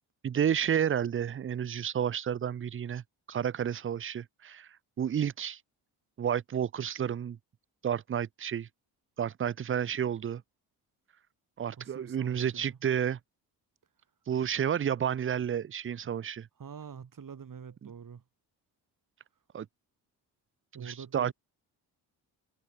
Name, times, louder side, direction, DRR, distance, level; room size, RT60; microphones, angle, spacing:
voice 1, 0.2-4.7 5.0-5.6 6.2-7.4 7.8-8.7 9.2-10.4 11.6-13.2 14.3-16.5 17.8-17.9 19.5-19.7 20.8-21.3, right 9 dB, 30° right, 0.5 m, -31 dB
voice 2, 11.8-12.8 16.6-18.2 20.7-21.3, right 7 dB, 50° right, 3.4 m, -45 dB
cardioid pair, 65°, 42 cm